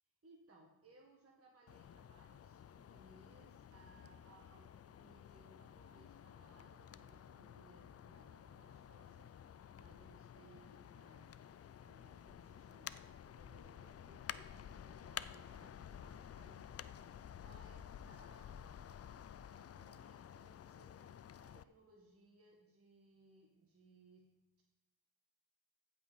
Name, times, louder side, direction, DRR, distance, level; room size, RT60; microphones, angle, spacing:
voice 1, 0.2-11.4 11.8-18.5 19.6-24.3, right 2 dB, 35° right, -1 dB, 1.7 m, -65 dB
sound 1, 1.7-21.6, left 9 dB, 40° left, 0.4 m, -52 dB
15.5 x 5.6 x 4.1 m, 0.97 s
cardioid pair, 70°, 40 cm